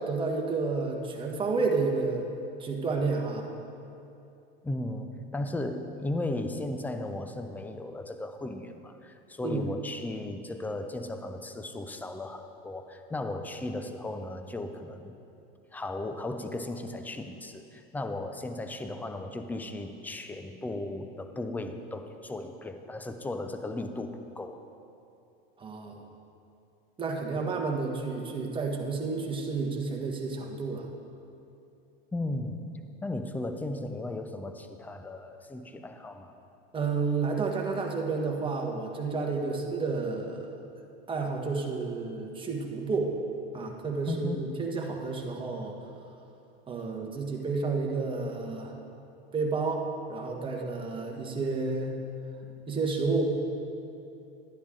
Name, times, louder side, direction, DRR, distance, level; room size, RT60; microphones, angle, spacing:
voice 1, 0.0-2.3 2.6-3.5 9.4-9.7 25.6-26.0 27.0-30.9 36.7-40.5 41.1-43.1 43.5-45.8 46.7-48.8 49.3-51.9 52.7-53.2, right 4 dB, 15° right, 1 dB, 1.3 m, -30 dB
voice 2, 4.6-15.2 15.7-24.6 32.1-36.3 44.1-44.8, left 2 dB, 5° left, 7 dB, 0.5 m, -36 dB
12.0 x 10.0 x 3.7 m, 2.7 s
supercardioid pair, 120°, 29 cm